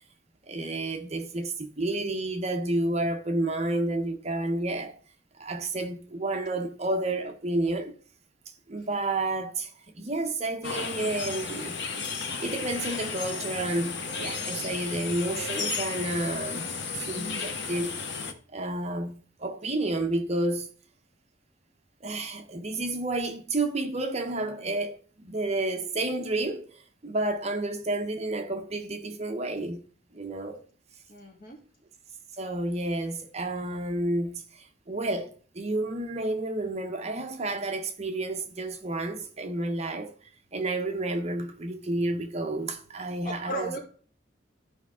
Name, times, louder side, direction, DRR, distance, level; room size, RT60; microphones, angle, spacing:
voice 1, 0.5-5.0 5.4-7.9 8.7-11.8 12.4-18.0 18.5-20.7 22.0-29.8 30.1-30.6 32.4-40.1 40.5-43.8, right 2 dB, 35° right, 0.9 m, -30 dB
sound 1, 10.6-18.3, left 5 dB, 70° left, 1.1 m, -34 dB
voice 2, 31.1-31.6 43.2-43.8, equal, 50° left, 2.6 m, -35 dB
13.0 x 5.0 x 3.6 m
head